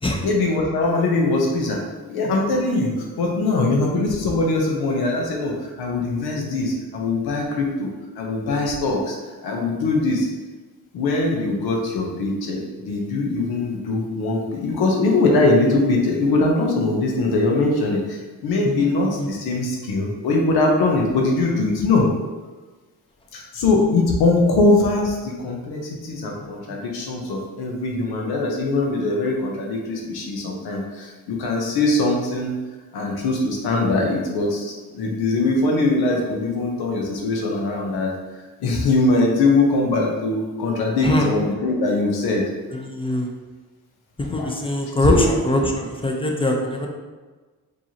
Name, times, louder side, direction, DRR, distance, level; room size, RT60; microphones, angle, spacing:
voice 1, 0.2-9.2 9.4-10.3 10.9-22.1 23.3-32.5 32.9-42.4 44.4-44.5 45.0-45.4, left 2 dB, 80° left, 0 dB, 0.9 m, -21 dB
voice 2, 42.7-43.3 44.2-46.9, left 1 dB, 15° left, 1 dB, 0.7 m, -22 dB
4.5 x 3.1 x 2.8 m, 1.3 s
supercardioid pair, 65°, 37 cm